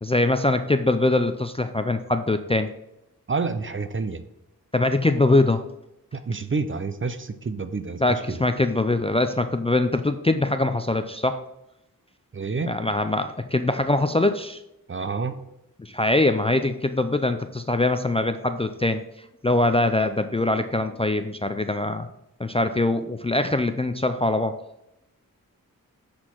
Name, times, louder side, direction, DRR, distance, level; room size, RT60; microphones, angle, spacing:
voice 1, 0.0-2.7 4.7-5.6 8.0-11.4 12.6-14.6 15.8-19.0 19.4-22.1 22.4-24.5, left 2 dB, 20° left, 8 dB, 0.3 m, -23 dB
voice 2, 3.3-4.2 6.1-8.4 12.3-12.7 14.9-15.4, right 4 dB, 35° right, 10 dB, 0.5 m, -28 dB
7.7 x 4.3 x 4.5 m, 0.86 s
wide cardioid pair, 75°, 35 cm